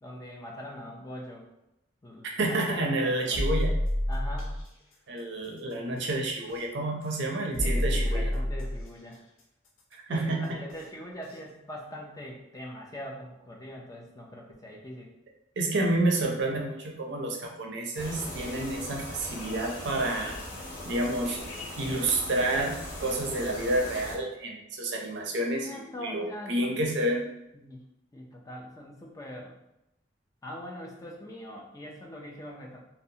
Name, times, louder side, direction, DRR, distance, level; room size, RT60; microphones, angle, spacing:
voice 1, 0.0-1.5 2.0-2.3 2.8-3.4 4.1-4.6 7.6-9.3 10.1-15.1 25.6-26.7 27.5-27.8 28.1-29.6 30.4-32.8, equal, 15° left, -1 dB, 0.3 m, -42 dB
voice 2, 2.4-3.7 5.1-8.3 10.1-10.6 15.6-20.4 20.9-21.4 21.8-27.3, right 2 dB, 60° right, 0 dB, 0.5 m, -29 dB
sound 1, 3.3-4.6 6.5-6.6 7.5-8.9 10.7-10.8 11.3-11.4, left 1 dB, 80° left, 0.5 m, -28 dB
sound 2, 17.9-24.1, left 1 dB, 40° left, 1.0 m, -40 dB
2.7 x 2.0 x 2.6 m, 0.85 s
head